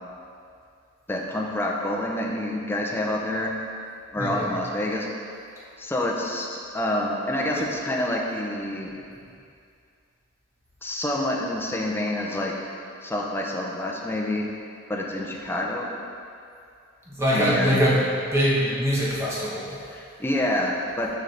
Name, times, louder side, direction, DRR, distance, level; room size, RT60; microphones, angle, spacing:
voice 1, 1.1-3.5 4.1-5.1 5.8-8.9 10.8-14.5 14.9-15.9 17.3-17.8 19.9-21.1, left 1 dB, 10° left, -1 dB, 0.6 m, -27 dB
voice 2, 4.2-4.6 17.1-18.0 18.3-19.8, equal, 15° right, -7 dB, 1.1 m, -23 dB
6.5 x 5.2 x 3.3 m, 2.4 s
head